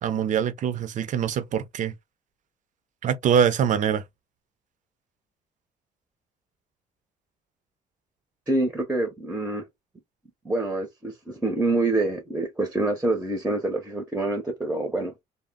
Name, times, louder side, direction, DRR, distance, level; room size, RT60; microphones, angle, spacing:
voice 1, 0.0-1.9 3.0-4.0, right 8 dB, 50° right, 0.6 m, -24 dB
voice 2, 8.5-9.7 10.4-15.1, right 2 dB, 10° right, 0.7 m, -26 dB
2.1 x 2.1 x 3.5 m
cardioid pair, 110°, 17 cm